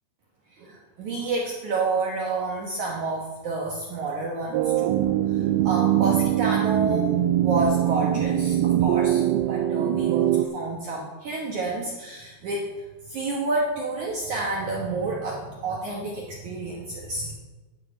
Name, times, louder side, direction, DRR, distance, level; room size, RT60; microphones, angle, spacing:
voice 1, 0.6-5.4 5.6-7.2 7.4-12.7 13.1-17.4, right 3 dB, 65° right, -2 dB, 2.0 m, -29 dB
sound 1, 4.5-10.5, right 12 dB, 90° right, 2.1 m, -22 dB
10.5 x 6.9 x 7.9 m, 1.2 s
omnidirectional pair, 5.0 m